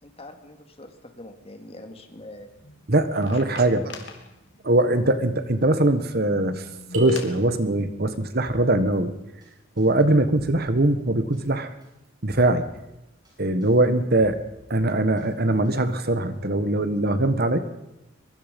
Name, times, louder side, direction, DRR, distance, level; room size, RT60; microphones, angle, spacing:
voice 1, 0.0-2.5 3.3-3.8, left 1 dB, 30° left, 6 dB, 2.5 m, -43 dB
sound 1, 2.3-7.4, left 3 dB, 55° left, 3.2 m, -44 dB
voice 2, 2.9-3.8 4.6-6.7 6.9-9.1 9.8-11.7 12.2-12.6 13.4-14.4 14.7-17.6, right 1 dB, 50° right, 10 dB, 1.6 m, -21 dB
sound 2, 6.9-8.1, right 2 dB, 90° right, 5.7 m, -32 dB
Drum kit, 8.4-9.0 9.4-9.5 9.8-10.9 11.3-11.5 11.8-12.9 13.2-13.3 13.6-14.8 15.2-16.1, equal, 20° right, 7.9 m, -48 dB
23.5 x 23.0 x 5.4 m, 0.93 s
head